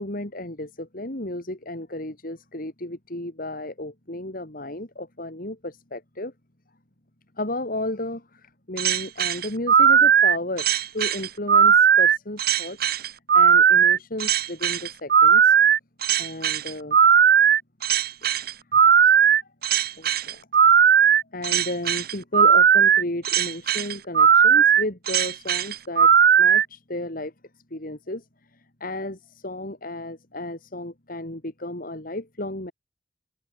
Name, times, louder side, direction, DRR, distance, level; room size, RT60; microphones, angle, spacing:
voice 1, 0.0-6.3 7.4-15.5 16.2-17.0 19.0-19.5 20.0-20.4 21.3-27.3 27.7-28.2 28.5-32.7, left 1 dB, 50° left, 3.5 m, -33 dB
sound 1, 8.8-26.6, right 7 dB, 55° right, 0.9 m, -17 dB
head